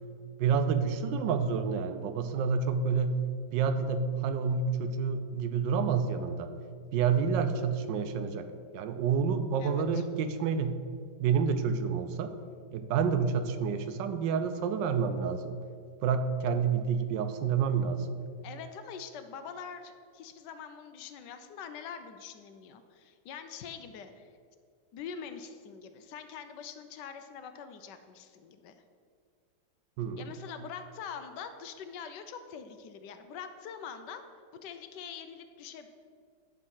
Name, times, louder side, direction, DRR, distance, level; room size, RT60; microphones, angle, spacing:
voice 1, 0.4-3.2 3.5-6.5 6.9-8.5 8.7-10.8 11.2-12.3 12.7-15.6 16.0-18.1 30.0-30.2, right 6 dB, 85° right, 9 dB, 1.3 m, -29 dB
voice 2, 9.6-10.0 18.4-24.3 24.9-28.7 30.2-34.2 34.5-35.9, left 7 dB, 75° left, 9 dB, 1.2 m, -44 dB
10.5 x 3.6 x 6.1 m, 2.1 s
omnidirectional pair, 2.0 m